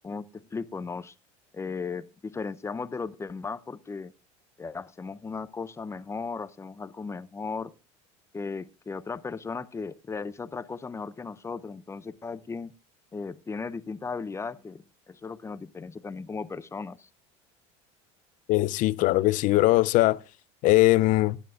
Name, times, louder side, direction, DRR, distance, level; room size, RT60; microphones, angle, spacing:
voice 1, 0.0-1.1 1.5-4.1 4.6-7.7 8.3-12.7 13.1-17.1, left 4 dB, 15° left, 0.6 m, -36 dB
voice 2, 18.5-20.2 20.6-21.4, left 18 dB, 55° left, 0.5 m, -21 dB
17.0 x 10.0 x 2.4 m
supercardioid pair, 105°, 16 cm